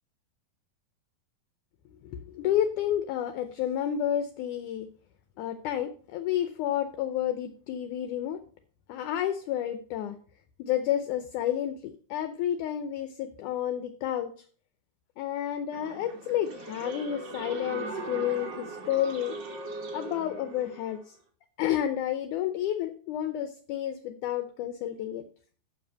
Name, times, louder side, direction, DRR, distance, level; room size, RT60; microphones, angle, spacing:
voice 1, 2.0-4.9 5.4-8.4 8.9-10.2 10.6-14.3 15.2-19.4 19.9-21.2 21.6-25.2, left 11 dB, 80° left, 9 dB, 1.8 m, -30 dB
sound 1, 15.7-21.0, right 3 dB, 75° right, 1.0 m, -39 dB
7.3 x 6.0 x 5.5 m, 0.43 s
omnidirectional pair, 4.1 m